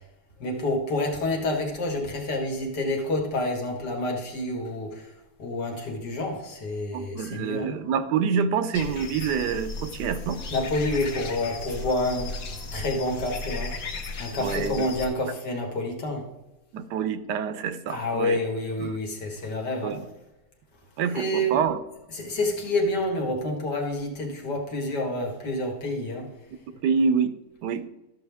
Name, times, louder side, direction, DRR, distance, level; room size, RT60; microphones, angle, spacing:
voice 1, 0.4-5.1 5.4-7.7 10.5-12.3 12.7-13.8 14.2-16.3 17.9-20.0 21.1-21.6 22.1-26.3, left 1 dB, 85° left, 1 dB, 2.3 m, -28 dB
voice 2, 6.9-10.4 14.4-14.8 16.7-18.4 18.8-18.9 19.8-20.0 21.0-21.8 26.8-27.3 27.6-27.8, right 6 dB, 90° right, 13 dB, 1.3 m, -26 dB
sound 1, 8.7-15.1, left 3 dB, 60° left, 1.3 m, -35 dB
13.0 x 6.6 x 3.5 m, 0.96 s
omnidirectional pair, 1.7 m